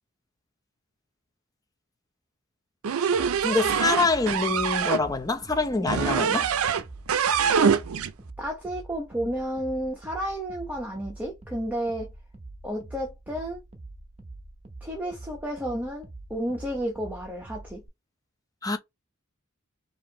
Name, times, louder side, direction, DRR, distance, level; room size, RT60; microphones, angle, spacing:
sound 1, 2.8-5.0 5.9-6.8 7.1-8.1, right 7 dB, 75° right, 0.4 m, -24 dB
sound 2, 3.1-17.9, right 2 dB, 30° right, 0.8 m, -45 dB
voice 1, 3.4-6.5 18.6-18.8, left 3 dB, 15° left, 0.7 m, -25 dB
voice 2, 8.4-12.1 12.6-13.6 14.8-17.8, equal, 10° right, 1.0 m, -32 dB
4.9 x 2.7 x 3.0 m
head